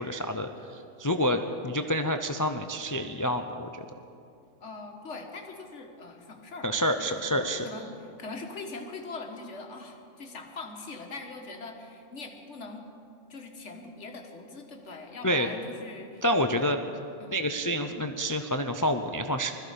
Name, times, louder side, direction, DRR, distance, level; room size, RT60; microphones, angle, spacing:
voice 1, 0.0-3.7 6.6-7.7 15.2-15.5 16.2-16.8 17.3-19.5, equal, 30° left, 7 dB, 0.3 m, -28 dB
voice 2, 4.6-12.8 13.3-16.6 17.2-17.5, left 3 dB, 70° left, 3 dB, 1.7 m, -42 dB
20.5 x 14.0 x 5.0 m, 2.6 s
omnidirectional pair, 1.3 m